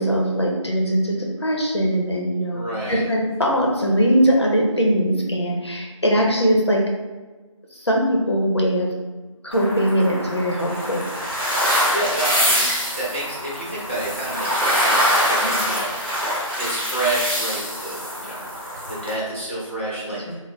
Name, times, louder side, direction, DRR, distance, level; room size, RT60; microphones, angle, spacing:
voice 1, 0.0-6.8 7.7-8.9 9.4-11.0 15.6-15.7 20.3-20.4, equal, 55° left, -1 dB, 0.7 m, -21 dB
voice 2, 2.5-3.0 11.9-16.3 16.6-20.4, right 1 dB, 20° left, -9 dB, 0.8 m, -29 dB
sound 1, 9.5-19.1, equal, 40° right, 1.2 m, -24 dB
4.2 x 2.0 x 2.9 m, 1.3 s
figure-of-eight pair, 180°, 17 cm